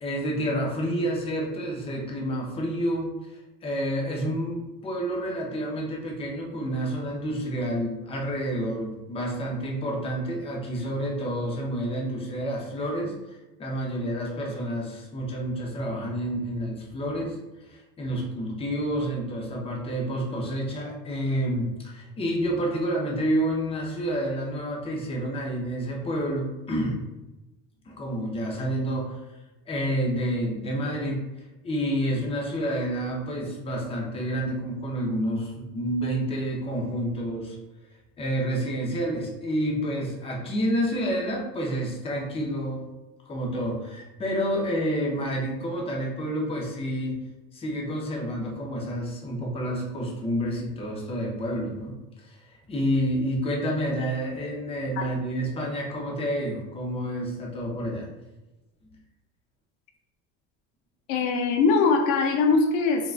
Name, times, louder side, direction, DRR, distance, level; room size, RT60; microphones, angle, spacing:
voice 1, 0.0-3.1 3.6-17.4 17.7-27.0 27.9-29.2 29.7-31.2 31.6-37.6 38.2-42.9 43.3-47.2 47.5-52.0 52.2-52.4 52.7-58.1, equal, 15° left, -1 dB, 0.5 m, -29 dB
voice 2, 61.1-63.1, left 4 dB, 85° left, 5 dB, 0.6 m, -22 dB
3.5 x 2.4 x 2.4 m, 1.0 s
supercardioid pair, 125°, 39 cm